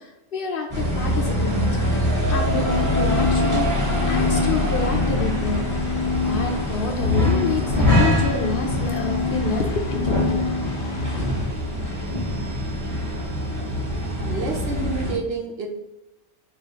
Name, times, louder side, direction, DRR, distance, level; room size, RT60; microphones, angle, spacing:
voice 1, 0.0-1.7 2.3-5.6 6.3-10.4, left 4 dB, 60° left, 3 dB, 0.7 m, -28 dB
sound 1, 0.7-15.1, left 1 dB, 20° right, 0.9 m, -24 dB
sound 2, 2.3-11.4, left 5 dB, 80° left, 0.9 m, -28 dB
voice 2, 14.2-15.7, right 4 dB, 65° right, 1 dB, 0.9 m, -29 dB
4.3 x 3.0 x 2.8 m, 0.97 s
omnidirectional pair, 1.2 m